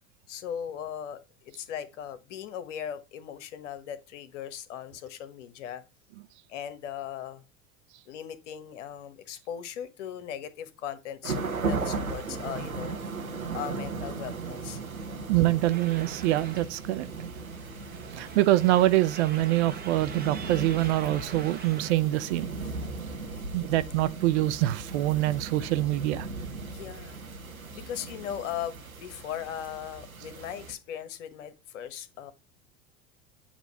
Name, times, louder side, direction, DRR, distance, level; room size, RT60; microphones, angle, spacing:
voice 1, 0.3-5.8 6.5-7.4 8.1-12.9 13.5-14.8 16.4-16.5 23.1-23.4 26.7-27.2 27.7-32.3, left 9 dB, 60° left, 1.2 m, -38 dB
sound 1, 11.2-30.7, right 4 dB, 90° right, 1.0 m, -37 dB
voice 2, 15.3-17.1 18.1-22.5 23.5-26.3, right 15 dB, 55° right, 0.6 m, -25 dB
sound 2, 15.7-21.9, right 5 dB, 20° right, 1.4 m, -44 dB
8.9 x 3.0 x 5.4 m
figure-of-eight pair, 80°, 41 cm